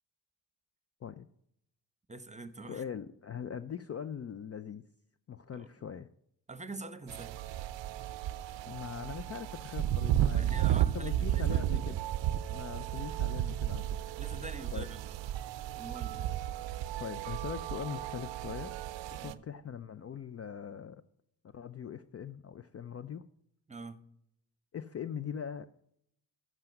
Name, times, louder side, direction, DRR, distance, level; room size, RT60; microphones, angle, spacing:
voice 1, 2.1-2.8 5.5-5.7 6.5-7.3 10.3-12.0 14.2-15.1 15.8-16.4 19.2-19.4 23.7-24.0, right 3 dB, 15° right, 13 dB, 1.0 m, -45 dB
voice 2, 2.7-4.8 5.3-6.1 8.7-12.1 12.5-14.1 14.7-14.9 17.0-18.8 19.1-21.0 21.5-23.3 24.7-25.7, left 8 dB, 35° left, 12 dB, 0.5 m, -41 dB
sound 1, 7.1-19.3, right 12 dB, 75° right, 0.6 m, -33 dB
7.6 x 6.0 x 7.6 m, 0.73 s
supercardioid pair, 45°, 44 cm